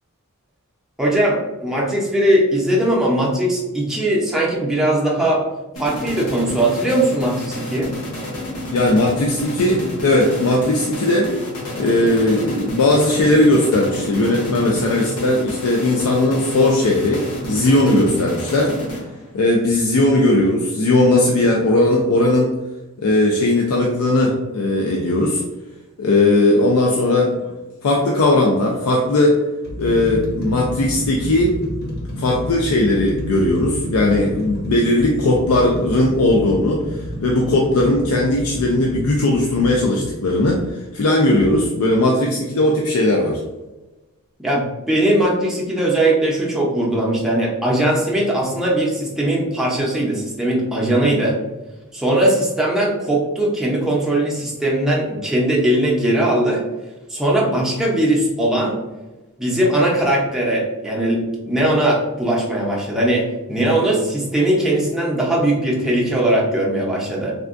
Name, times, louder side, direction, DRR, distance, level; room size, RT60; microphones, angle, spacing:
voice 1, 1.0-5.4 5.8-7.9 44.4-51.4 51.9-56.6 57.1-58.8 59.4-67.3, right 1 dB, ahead, -4 dB, 0.6 m, -19 dB
sound 1, 5.8-19.4, equal, 85° left, 1.0 m, -30 dB
voice 2, 8.7-11.3 11.8-18.7 19.3-22.5 23.0-25.4 26.0-27.3 27.8-29.4 29.8-31.6 32.2-43.4, left 1 dB, 70° left, -1 dB, 0.4 m, -18 dB
sound 2, 27.3-27.6 28.5-28.6 29.3-40.6 41.4-41.5, equal, 45° left, 0.7 m, -30 dB
3.5 x 2.2 x 2.4 m, 1.1 s
head